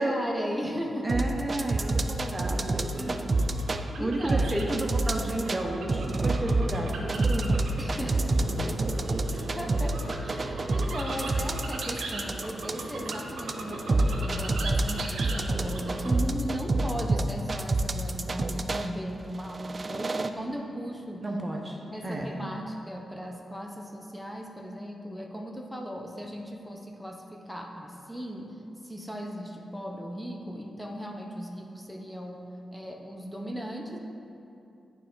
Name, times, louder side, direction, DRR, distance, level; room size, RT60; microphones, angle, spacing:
voice 1, 0.0-1.2 2.9-4.5 7.8-8.5 9.6-21.2 21.9-28.6 28.8-32.5 32.7-34.0, equal, 5° left, 0 dB, 0.8 m, -37 dB
voice 2, 1.0-3.2 4.0-8.1 8.5-9.4 11.2-11.3 21.2-22.4, right 1 dB, 30° right, 0 dB, 0.7 m, -32 dB
sound 1, 1.1-3.8 4.3-5.6 5.9-18.9 19.4-20.3, right 2 dB, 45° right, 0.3 m, -27 dB
sound 2, 1.7-16.2, right 2 dB, 85° right, 0.7 m, -39 dB
9.0 x 3.4 x 3.9 m, 2.7 s
cardioid pair, 60°, 0 cm